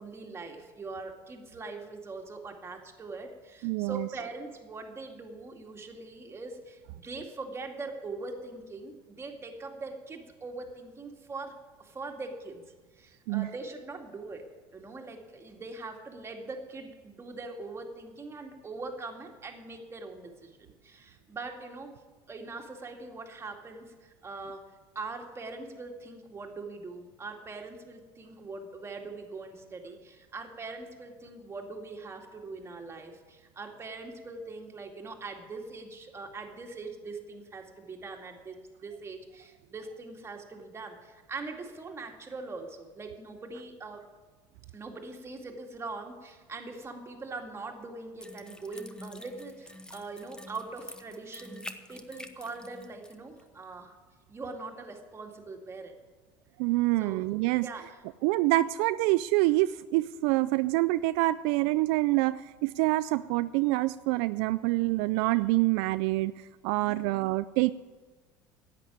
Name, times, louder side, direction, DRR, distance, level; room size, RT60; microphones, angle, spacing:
voice 1, 0.0-12.6 13.0-22.0 22.3-44.0 44.7-54.0 54.3-55.9 57.0-57.2 57.6-58.0 66.7-67.0, right 3 dB, 25° right, 2 dB, 2.3 m, -42 dB
voice 2, 3.6-4.1 13.3-13.5 56.6-57.7 58.2-66.3 66.6-67.7, right 19 dB, 75° right, 14 dB, 0.4 m, -26 dB
sound 1, 48.2-53.1 53.4-53.5, left 1 dB, 10° left, 1.0 m, -47 dB
11.0 x 8.6 x 10.0 m, 1.3 s
supercardioid pair, 100°, 10 cm